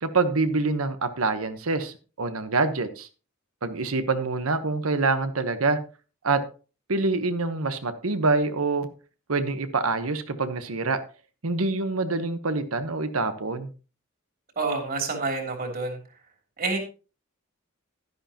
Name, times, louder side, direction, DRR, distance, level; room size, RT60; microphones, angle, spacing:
voice 1, 0.0-3.1 3.6-5.8 6.2-6.4 6.9-8.9 9.3-11.0 11.4-13.7, right 3 dB, 85° right, 9 dB, 1.1 m, -26 dB
voice 2, 14.5-16.0 16.6-16.8, right 3 dB, 45° right, 2 dB, 3.1 m, -28 dB
11.5 x 11.0 x 2.9 m, 0.35 s
head